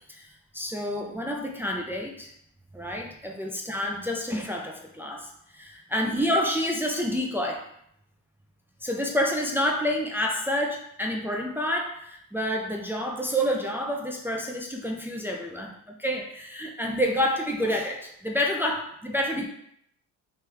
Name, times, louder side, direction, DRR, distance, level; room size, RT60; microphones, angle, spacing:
voice 1, 0.1-2.3 2.7-7.6 8.8-15.7 16.0-19.5, equal, 5° right, 0 dB, 0.3 m, -28 dB
2.9 x 2.2 x 3.3 m, 0.74 s
supercardioid pair, 70°, 38 cm